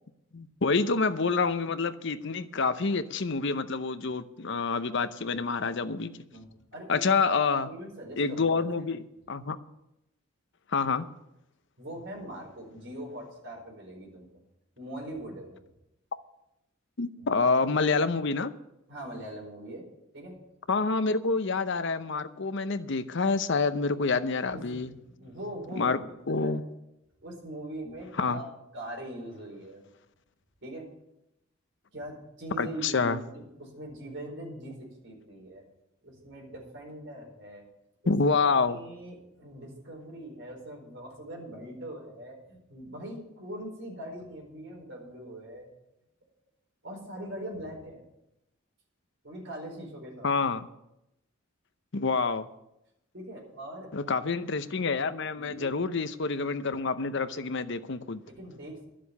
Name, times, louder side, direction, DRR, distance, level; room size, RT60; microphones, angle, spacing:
voice 1, 0.3-6.2 6.9-7.7 8.2-9.6 10.7-11.1 17.0-18.5 20.7-24.9 25.8-26.0 26.3-26.6 28.2-28.4 32.6-33.2 38.1-38.8 50.2-50.7 51.9-52.5 53.9-58.2, left 4 dB, 60° left, 11 dB, 0.8 m, -27 dB
voice 2, 6.3-7.2 7.6-8.7 11.8-14.3 14.8-15.6 17.2-17.3 17.6-17.8 18.9-19.9 20.1-20.4 24.5-26.6 27.2-28.4 28.7-29.9 30.6-30.9 31.9-35.6 36.0-37.6 38.0-38.1 38.7-45.7 46.8-48.0 49.2-50.3 53.1-53.9 55.4-55.7 58.2-58.9, right 1 dB, 60° right, 0 dB, 4.7 m, -42 dB
12.0 x 7.6 x 8.3 m, 0.86 s
head